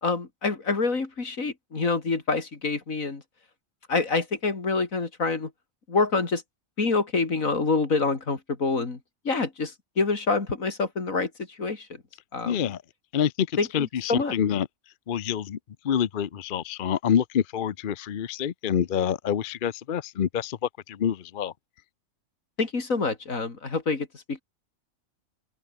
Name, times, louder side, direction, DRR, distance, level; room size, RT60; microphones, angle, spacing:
voice 1, 0.0-3.2 3.9-5.5 5.9-6.4 6.8-9.0 9.3-11.3 11.6-11.9 12.3-12.7 13.6-14.3 22.6-24.4, left 4 dB, 80° left, 3.3 m, -26 dB
voice 2, 12.5-12.8 13.1-13.5 13.7-14.7 15.1-15.6 15.8-20.6 20.9-21.5, left 8 dB, 50° left, 0.7 m, -26 dB
open air
omnidirectional pair, 1.4 m